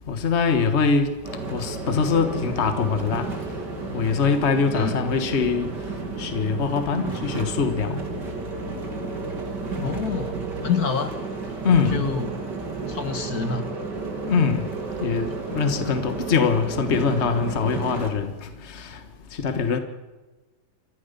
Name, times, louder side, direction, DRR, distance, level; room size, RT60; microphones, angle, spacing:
voice 1, 0.1-1.1 1.5-3.3 3.9-5.7 6.2-8.0 11.6-12.0 14.3-14.7 15.0-18.3 18.7-18.8 19.4-19.8, left 5 dB, 40° left, 1.7 m, -23 dB
sound 1, 1.2-18.1, right 3 dB, 80° right, 3.3 m, -32 dB
voice 2, 9.8-11.2 11.4-11.5 11.9-12.4 12.9-13.7, left 6 dB, 60° left, 1.9 m, -27 dB
26.5 x 14.5 x 6.9 m
omnidirectional pair, 1.8 m